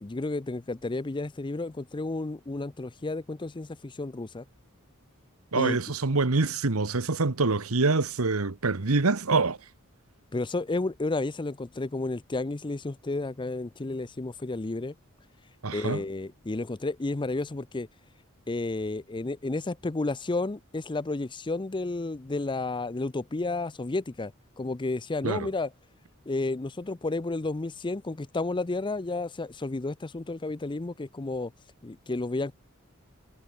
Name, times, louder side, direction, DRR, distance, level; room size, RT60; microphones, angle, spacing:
voice 1, 0.0-4.4 5.5-5.8 10.3-14.9 15.7-17.9 18.5-24.3 24.6-25.7 26.3-31.5 31.8-32.5, left 2 dB, 20° left, 0.5 m, -31 dB
voice 2, 5.5-9.6 15.6-16.0 25.2-25.5, right 3 dB, 85° right, 1.3 m, -25 dB
head